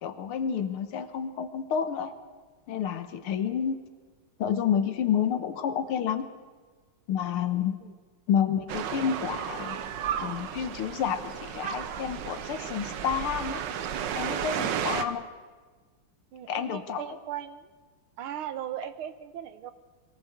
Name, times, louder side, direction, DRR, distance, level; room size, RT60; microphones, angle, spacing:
voice 1, 0.0-2.1 2.7-3.8 4.4-6.3 7.1-7.8 8.3-9.8 10.2-13.6 14.1-15.3 16.5-17.0, left 8 dB, 85° left, 10 dB, 2.1 m, -29 dB
sound 1, 8.7-15.0, right 8 dB, 65° right, 1.5 m, -33 dB
voice 2, 16.3-17.7 18.2-19.7, right 10 dB, 80° right, 13 dB, 1.8 m, -38 dB
21.5 x 15.5 x 7.9 m, 1.4 s
omnidirectional pair, 2.3 m